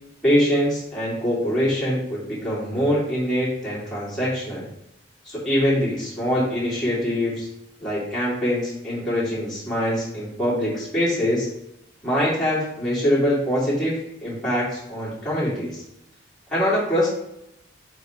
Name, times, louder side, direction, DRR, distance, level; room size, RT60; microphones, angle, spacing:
voice 1, 0.2-4.7 5.2-7.5 7.8-11.5 12.0-15.8 16.5-17.1, equal, 5° left, -9 dB, 2.9 m, -23 dB
5.3 x 4.7 x 6.0 m, 0.81 s
head